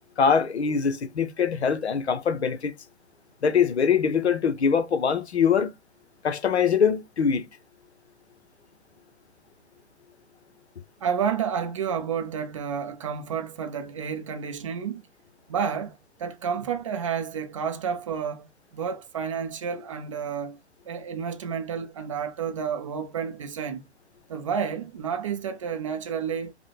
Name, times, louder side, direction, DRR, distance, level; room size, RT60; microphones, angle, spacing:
voice 1, 0.2-2.7 3.4-5.7 6.2-7.4, left 6 dB, 65° left, 0.8 m, -23 dB
voice 2, 11.0-15.0 15.5-20.6 20.9-23.8 24.3-26.5, right 7 dB, 30° right, 0.4 m, -30 dB
5.2 x 2.2 x 3.2 m
figure-of-eight pair, 120°, 35 cm